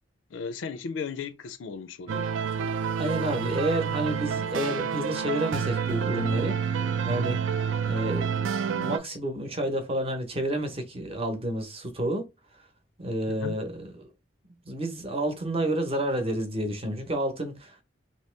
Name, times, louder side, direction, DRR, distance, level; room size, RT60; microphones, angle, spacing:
voice 1, 0.3-2.3 13.3-13.6, left 5 dB, 75° left, 0.4 m, -36 dB
sound 1, 2.1-9.0, right 6 dB, 70° right, 0.4 m, -28 dB
voice 2, 3.0-7.4 7.8-12.3 13.0-14.1 14.7-17.8, right 1 dB, 30° right, 0.8 m, -30 dB
2.9 x 2.9 x 3.2 m
head